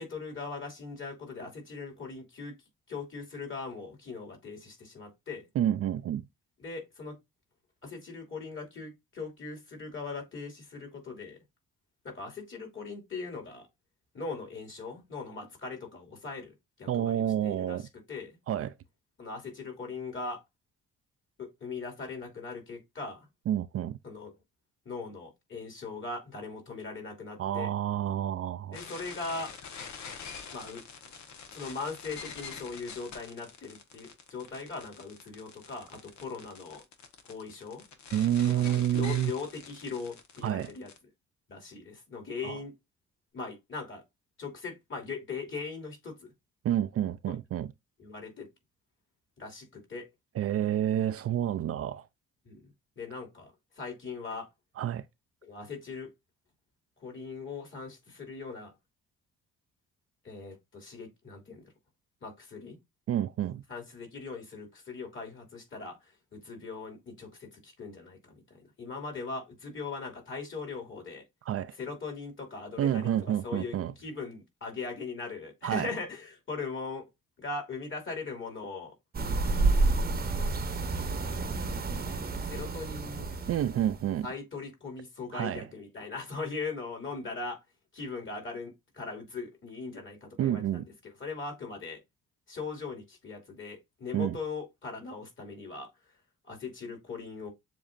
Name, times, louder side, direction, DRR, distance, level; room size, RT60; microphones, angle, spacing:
voice 1, 0.0-2.6 2.9-5.5 6.6-7.2 7.8-11.4 12.0-13.7 14.1-16.5 16.8-18.4 19.2-20.4 21.4-23.3 24.0-24.3 24.8-27.7 28.7-29.5 30.5-30.8 31.5-36.8 37.3-37.8 38.5-40.9 41.5-42.8 43.3-44.0 44.4-46.3 47.2-47.4 48.0-48.5 49.4-50.1 52.4-52.6 53.0-54.5 55.4-56.1 57.0-58.7 60.2-61.6 62.2-62.8 63.7-66.0 66.3-71.2 71.8-77.1 77.4-78.9 81.1-81.6 82.1-82.2 82.5-83.3 84.2-87.6 87.9-92.0 92.5-95.9 96.4-97.5, left 4 dB, 40° left, 2.7 m, -40 dB
voice 2, 5.6-6.2 16.9-17.9 18.5-18.7 23.5-24.0 27.4-28.8 38.1-39.3 40.4-40.7 42.4-42.6 46.6-47.7 50.4-52.0 54.8-55.0 63.1-63.6 71.5-71.7 72.8-73.9 75.6-75.9 83.5-84.3 85.3-85.7 90.4-90.8 94.1-94.4, right 11 dB, 50° right, 0.4 m, -29 dB
sound 1, 28.7-41.0, left 6 dB, 70° left, 1.2 m, -46 dB
sound 2, 79.1-84.1, right 3 dB, 30° right, 0.9 m, -29 dB
7.2 x 2.8 x 2.5 m
cardioid pair, 90°, 30 cm